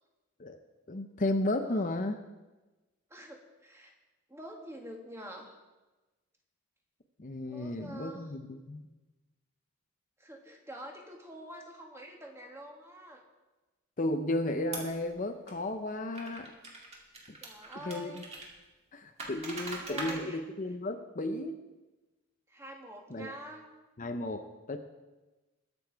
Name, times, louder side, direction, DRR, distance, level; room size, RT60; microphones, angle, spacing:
voice 1, 0.9-2.2 7.2-8.9 14.0-16.5 17.8-18.2 18.9-21.6 23.1-23.3 24.0-24.8, left 1 dB, 35° left, 6 dB, 0.7 m, -34 dB
voice 2, 3.1-3.9 4.3-5.6 7.5-8.3 10.2-13.2 17.4-18.3 19.6-20.4 22.5-23.7, right 1 dB, 10° right, 1 dB, 1.6 m, -46 dB
sound 1, 14.7-15.0 15.5-15.6 16.1-18.5 19.2-20.2, right 2 dB, 30° right, 2.2 m, -41 dB
21.0 x 7.1 x 4.6 m, 1.2 s
head